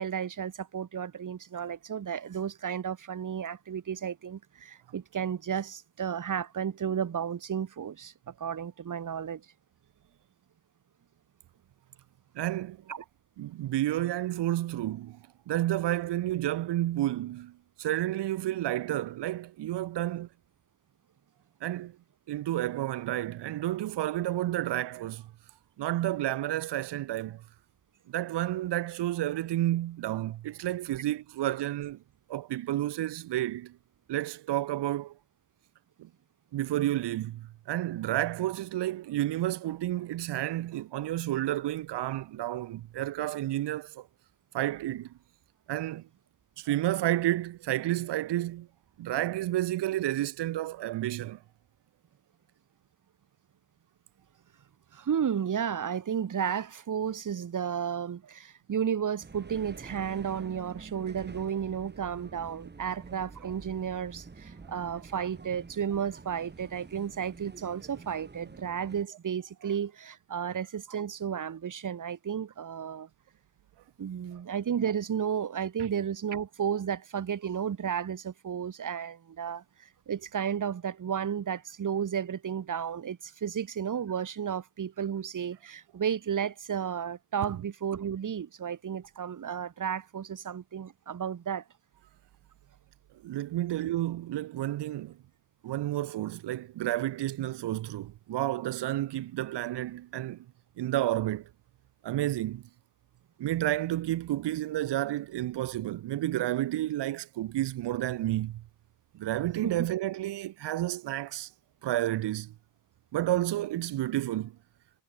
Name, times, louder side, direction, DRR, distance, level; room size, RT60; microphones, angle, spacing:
voice 1, 0.0-9.5 12.9-13.0 54.9-73.1 74.0-91.6 109.6-109.9, right 8 dB, 45° right, 3.2 m, -33 dB
voice 2, 12.4-12.8 13.4-15.2 15.5-17.5 17.8-20.3 21.6-21.9 22.3-25.3 25.8-27.4 28.1-32.0 32.3-33.7 34.1-35.2 36.0-36.1 36.5-44.1 44.5-45.1 45.7-46.0 46.6-48.7 49.0-51.4 70.4-70.5 93.2-95.2 95.6-100.4 100.8-101.5 102.0-102.6 103.4-108.6 109.1-111.5 111.8-112.5 113.1-114.5, right 14 dB, 75° right, 1.0 m, -31 dB
sound 1, 59.2-69.0, right 4 dB, 25° right, 4.8 m, -48 dB
cardioid pair, 145°, 42 cm